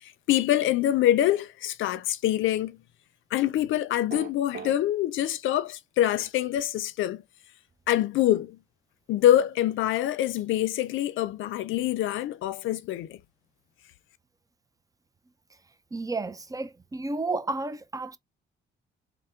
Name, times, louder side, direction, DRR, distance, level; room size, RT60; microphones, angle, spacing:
voice 1, 0.0-2.8 3.3-7.2 7.9-8.6 9.1-13.2, left 13 dB, 80° left, 0.5 m, -25 dB
sound 1, 4.1-4.8, right 6 dB, 50° right, 1.0 m, -37 dB
voice 2, 15.9-18.2, right 3 dB, 15° right, 0.4 m, -32 dB
3.4 x 2.1 x 4.3 m
cardioid pair, 90°, 20 cm